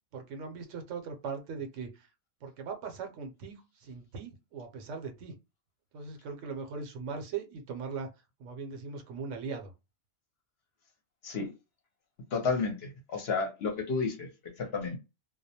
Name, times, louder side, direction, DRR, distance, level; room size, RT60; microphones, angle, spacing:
voice 1, 0.1-2.1 2.4-5.4 5.9-8.1 8.4-9.7, right 5 dB, 75° right, 0.9 m, -39 dB
voice 2, 12.3-14.3 14.6-15.0, left 4 dB, 60° left, 0.8 m, -31 dB
2.3 x 2.0 x 2.7 m
omnidirectional pair, 1.3 m